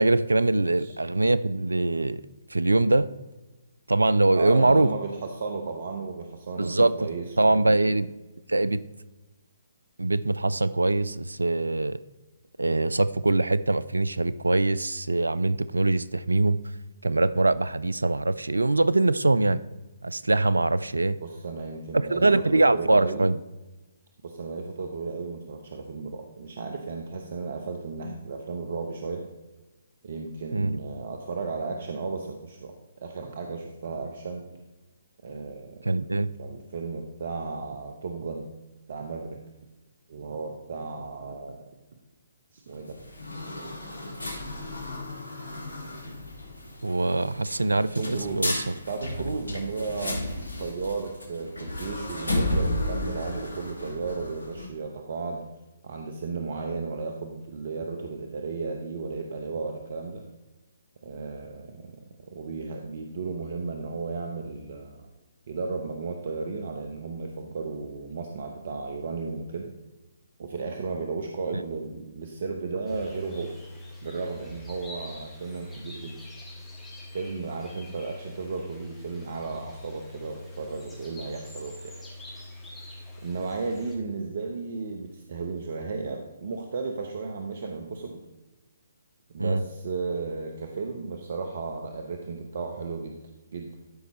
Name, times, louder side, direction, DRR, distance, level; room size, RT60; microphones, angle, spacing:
voice 1, 0.0-2.2 2.5-3.1 3.9-4.9 6.6-7.0 7.4-8.1 8.5-8.8 10.0-12.0 12.6-16.6 17.0-19.6 20.0-21.2 21.9-23.4 30.5-30.8 35.8-36.3 46.8-48.7 89.4-89.6, right 2 dB, 85° right, 17 dB, 0.3 m, -23 dB
voice 2, 4.3-7.6 21.2-23.3 24.2-29.2 30.0-34.4 35.2-35.7 36.4-38.5 38.9-39.4 40.1-41.7 42.5-43.0 48.0-48.5 48.9-50.2 50.6-55.5 55.8-60.2 61.0-61.9 62.3-65.1 65.5-69.7 70.4-73.5 74.0-76.1 77.1-81.9 83.2-88.2 89.3-93.2 93.5-93.7, right 4 dB, 55° right, 3 dB, 0.9 m, -34 dB
sound 1, 42.7-54.7, left 1 dB, 75° left, 2.1 m, -33 dB
sound 2, 72.9-84.0, left 1 dB, 10° left, 2.2 m, -44 dB
12.5 x 5.3 x 3.1 m, 1.1 s
figure-of-eight pair, 135°, 0 cm